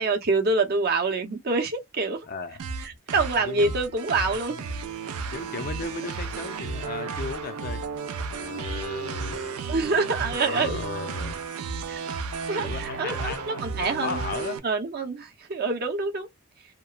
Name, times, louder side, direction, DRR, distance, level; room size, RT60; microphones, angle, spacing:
voice 1, 0.0-2.3 2.8-4.6 9.7-10.8 11.9-12.0 12.5-14.2 14.6-16.3, right 3 dB, 45° right, 0.7 m, -26 dB
voice 2, 2.3-2.6 3.4-3.8 4.3-4.6 5.0-7.9 8.3-9.6 10.4-11.4 12.6-13.7 14.0-14.6, left 4 dB, 40° left, 0.4 m, -36 dB
sound 1, 2.6-14.6, right 5 dB, 80° right, 0.5 m, -33 dB
2.9 x 2.1 x 2.3 m
head